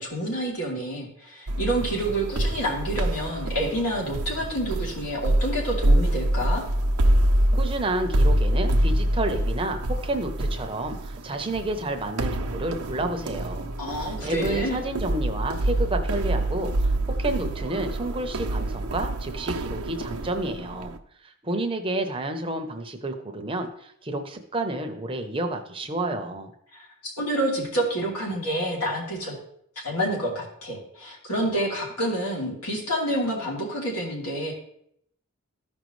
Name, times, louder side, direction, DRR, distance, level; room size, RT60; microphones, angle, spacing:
voice 1, 0.0-6.6 13.8-14.8 26.7-29.4 29.8-34.5, right 1 dB, 90° left, -2 dB, 2.9 m, -28 dB
sound 1, 1.5-21.0, right 1 dB, 85° right, 0.7 m, -26 dB
voice 2, 7.5-20.9 21.2-26.5, right 2 dB, 25° right, 5 dB, 0.7 m, -30 dB
14.0 x 5.2 x 3.1 m, 0.70 s
head